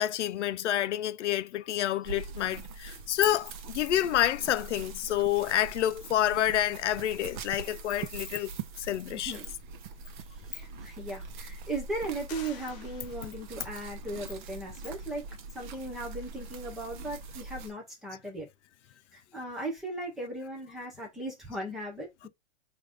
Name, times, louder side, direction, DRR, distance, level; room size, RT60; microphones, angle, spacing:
voice 1, 0.0-8.5 8.8-9.4, left 12 dB, 85° left, 0.6 m, -28 dB
sound 1, 2.0-17.7, right 4 dB, 45° right, 0.7 m, -43 dB
voice 2, 9.1-9.5 10.5-15.2 15.5-18.5 19.1-22.3, right 2 dB, ahead, 0.3 m, -37 dB
sound 2, 12.3-13.7, left 7 dB, 35° left, 1.3 m, -49 dB
4.9 x 2.5 x 3.3 m
hypercardioid pair, 155°, 34 cm